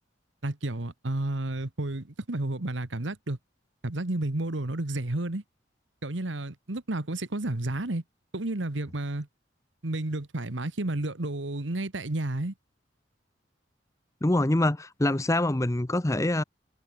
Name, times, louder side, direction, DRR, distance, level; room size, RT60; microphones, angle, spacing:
voice 1, 0.4-3.4 3.8-5.4 6.0-8.0 8.3-9.3 9.8-12.5, right 2 dB, 80° right, 1.6 m, -31 dB
voice 2, 14.2-16.4, left 1 dB, 15° left, 0.7 m, -25 dB
head